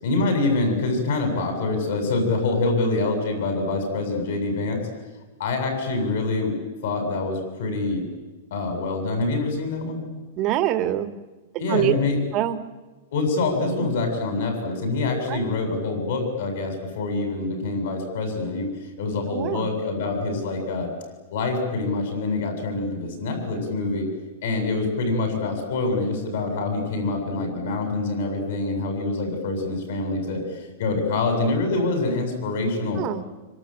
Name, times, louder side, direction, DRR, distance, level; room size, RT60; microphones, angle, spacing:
voice 1, 0.0-4.8 5.4-6.6 6.8-8.0 8.5-10.0 11.6-12.2 13.1-18.7 19.0-20.9 21.3-24.1 24.4-33.0, left 3 dB, 60° left, 5 dB, 7.7 m, -25 dB
voice 2, 10.4-11.1 11.7-11.9 12.3-12.6 15.3-15.4 19.3-19.7 33.0-33.2, right 13 dB, 25° right, 10 dB, 1.5 m, -24 dB
26.0 x 25.5 x 9.0 m, 1.2 s
supercardioid pair, 170°, 0 cm